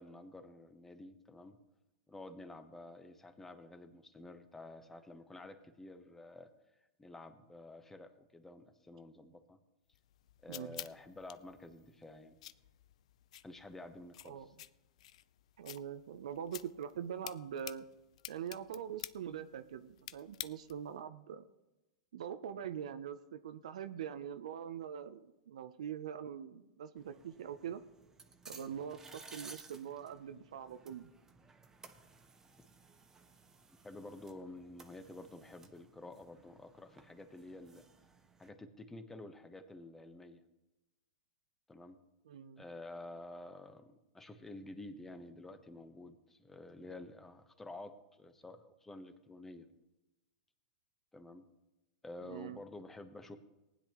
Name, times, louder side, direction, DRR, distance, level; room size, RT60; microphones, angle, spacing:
voice 1, 0.0-1.6 2.1-6.5 7.0-9.6 10.4-12.4 13.4-14.4 33.8-37.9 38.4-40.4 41.7-42.0 42.6-49.7 51.1-51.4 52.0-53.4, left 2 dB, 10° left, 9 dB, 1.1 m, -50 dB
sound 1, 9.9-21.0, left 13 dB, 70° left, 0.5 m, -51 dB
voice 2, 10.5-10.8 14.2-14.5 15.6-17.9 18.3-21.4 22.1-27.8 28.5-31.1 42.2-42.6 52.2-52.6, right 9 dB, 75° right, 10 dB, 0.6 m, -43 dB
sound 2, 27.0-38.5, right 4 dB, 15° right, 1.2 m, -58 dB
19.0 x 10.0 x 3.1 m, 1.0 s
hypercardioid pair, 115°, 4 cm